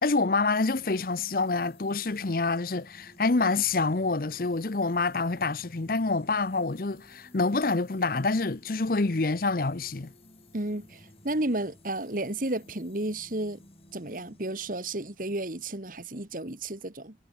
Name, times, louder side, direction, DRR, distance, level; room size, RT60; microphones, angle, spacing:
voice 1, 0.0-10.1, left 3 dB, 50° left, 0.8 m, -27 dB
sound 1, 0.7-16.5, left 1 dB, 35° left, 7.1 m, -56 dB
voice 2, 10.5-13.6 13.9-17.2, right 1 dB, 50° right, 2.0 m, -32 dB
head